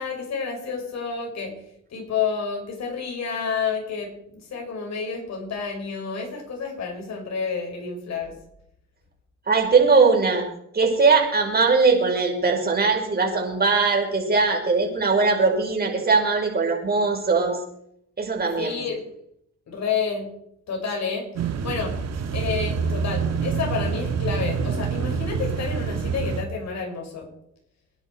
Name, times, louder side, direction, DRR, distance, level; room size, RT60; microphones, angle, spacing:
voice 1, 0.0-1.5 1.9-8.3 18.6-19.1 19.7-20.3 20.7-21.2 21.6-21.9 22.3-27.3, left 5 dB, 60° left, 1 dB, 6.2 m, -29 dB
voice 2, 9.5-10.4 10.7-17.6 18.2-18.8, right 4 dB, 30° right, 0 dB, 5.6 m, -20 dB
sound 1, 21.4-26.4, right 6 dB, 60° right, 2.2 m, -26 dB
24.0 x 11.0 x 4.9 m, 0.73 s
cardioid pair, 90°, 30 cm